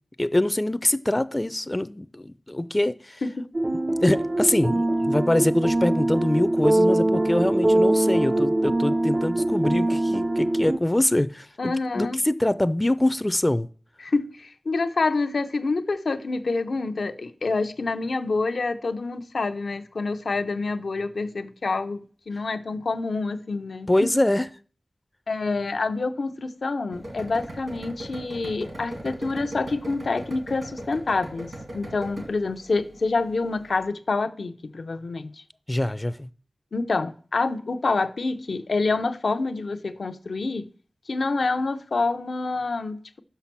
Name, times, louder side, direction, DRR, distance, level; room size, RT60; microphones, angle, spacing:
voice 1, 0.2-3.2 4.0-13.7 23.9-24.5 35.7-36.3, left 1 dB, 20° left, 0.4 m, -24 dB
sound 1, 3.5-10.8, right 1 dB, 45° right, 0.5 m, -22 dB
voice 2, 11.6-12.2 14.0-24.1 25.3-35.3 36.7-40.7 41.1-43.2, left 3 dB, 90° left, 0.6 m, -27 dB
sound 2, 26.9-33.8, right 1 dB, 75° right, 2.3 m, -38 dB
6.1 x 5.7 x 5.9 m
wide cardioid pair, 75°, 0 cm